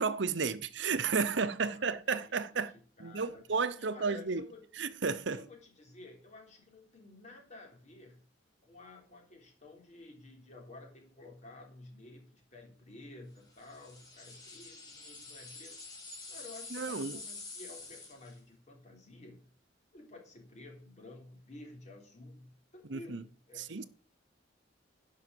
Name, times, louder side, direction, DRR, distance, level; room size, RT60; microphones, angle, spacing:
voice 1, 0.0-2.7 3.0-4.5 4.8-5.4 16.7-17.2 22.9-23.2 23.6-23.9, right 5 dB, 70° right, 0.8 m, -32 dB
voice 2, 1.3-2.4 2.7-3.5 3.8-4.6 5.3-8.2 8.6-15.7 16.3-19.5 19.9-23.9, left 2 dB, 40° left, 3.8 m, -52 dB
sound 1, 13.6-18.4, left 3 dB, 20° left, 3.4 m, -47 dB
11.0 x 5.7 x 7.6 m
head